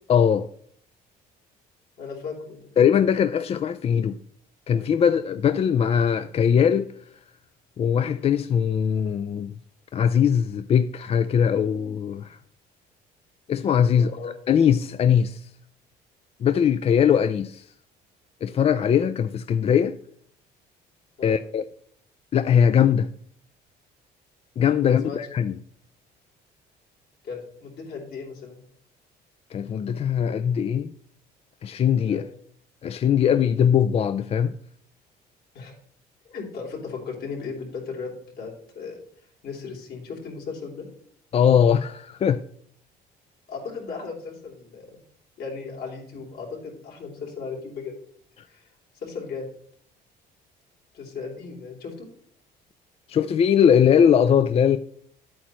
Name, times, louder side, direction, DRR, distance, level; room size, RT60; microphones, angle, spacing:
voice 1, 0.1-0.5 2.8-4.2 4.7-6.9 7.8-9.5 9.9-12.4 13.5-14.1 14.5-15.5 16.4-17.6 18.4-20.0 21.2-21.6 22.3-23.1 24.6-25.5 29.5-30.9 31.6-32.2 32.8-34.5 41.3-42.4 53.1-54.8, left 8 dB, 35° left, 0.4 m, -20 dB
voice 2, 2.0-2.7 13.9-14.3 21.2-21.4 24.8-25.2 27.2-28.6 32.0-32.3 35.5-35.8 36.2-39.0 39.4-40.8 43.5-45.0 45.4-47.9 48.5-48.7 49.0-49.5 50.9-52.1, left 5 dB, 65° left, 3.5 m, -36 dB
10.5 x 8.5 x 3.1 m
cardioid pair, 110°, 17 cm